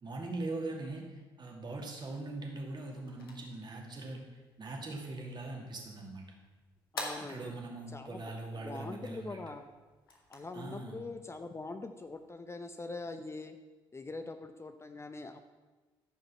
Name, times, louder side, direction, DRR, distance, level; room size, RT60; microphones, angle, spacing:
voice 1, 0.0-6.3 7.2-9.4 10.5-11.0, right 2 dB, 40° right, 0 dB, 2.6 m, -41 dB
sound 1, 2.6-12.3, left 2 dB, 85° left, 1.2 m, -50 dB
voice 2, 6.9-7.5 7.9-8.2 8.6-9.6 10.3-13.6 13.9-15.4, left 3 dB, 25° left, 8 dB, 0.7 m, -43 dB
13.5 x 5.4 x 5.6 m, 1.3 s
hypercardioid pair, 45°, 12 cm